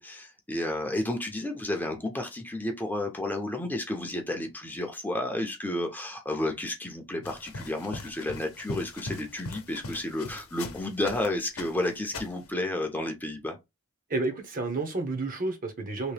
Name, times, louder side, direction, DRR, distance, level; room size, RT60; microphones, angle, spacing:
voice 1, 0.0-13.6, left 1 dB, 10° left, 0.6 m, -32 dB
sound 1, 7.2-11.3 11.6-12.5, left 2 dB, 75° left, 0.8 m, -40 dB
voice 2, 14.1-16.1, right 3 dB, 40° right, 0.8 m, -30 dB
3.0 x 2.9 x 3.3 m
head